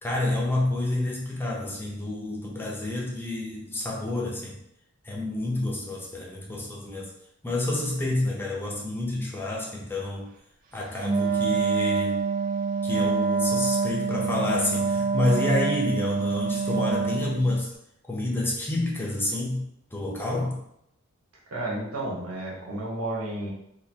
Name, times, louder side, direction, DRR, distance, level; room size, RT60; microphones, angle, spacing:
voice 1, 0.0-4.6 5.0-7.1 7.4-10.2 10.7-12.2 12.8-17.7 18.1-19.6 19.9-20.6, left 2 dB, 10° left, -3 dB, 0.7 m, -28 dB
Wind instrument woodwind instrument, 11.0-17.5, right 5 dB, 40° right, 0.4 m, -26 dB
voice 2, 21.5-23.5, right 1 dB, 85° right, -4 dB, 1.1 m, -32 dB
3.8 x 2.8 x 2.8 m, 0.76 s
head